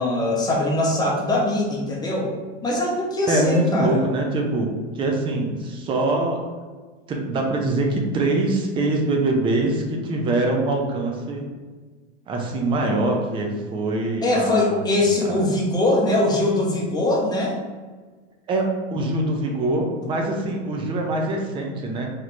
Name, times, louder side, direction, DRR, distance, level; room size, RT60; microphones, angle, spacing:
voice 1, 0.0-2.3 2.6-4.1 14.2-17.6, left 2 dB, 10° left, -3 dB, 0.8 m, -22 dB
voice 2, 3.3-4.7 4.9-6.4 7.1-11.5 12.3-15.5 18.5-22.1, right 2 dB, 15° right, 1 dB, 0.4 m, -24 dB
3.0 x 2.4 x 3.2 m, 1.4 s
hypercardioid pair, 100°, 37 cm